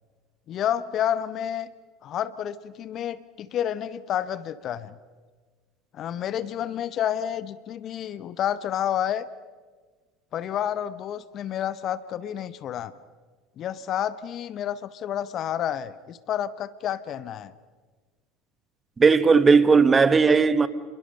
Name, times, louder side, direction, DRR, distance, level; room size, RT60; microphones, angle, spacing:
voice 1, 0.5-1.7 2.0-5.0 5.9-9.3 10.3-12.9 13.6-17.5, left 10 dB, 45° left, 0.9 m, -29 dB
voice 2, 19.0-20.7, right 4 dB, 25° right, 1.1 m, -17 dB
28.5 x 22.5 x 5.5 m
figure-of-eight pair, 70°, 0 cm